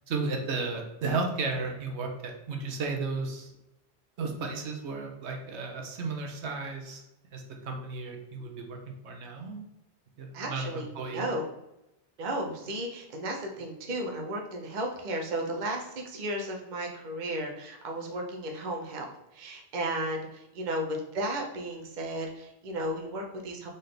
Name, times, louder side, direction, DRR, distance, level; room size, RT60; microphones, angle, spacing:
voice 1, 0.1-3.5 4.2-7.0 7.3-8.8 9.0-9.6 10.2-11.3, right 3 dB, 85° right, 3 dB, 1.1 m, -34 dB
voice 2, 10.3-11.4 12.2-23.7, right 1 dB, 45° right, 1 dB, 0.9 m, -34 dB
4.1 x 4.0 x 3.2 m, 0.90 s
omnidirectional pair, 1.1 m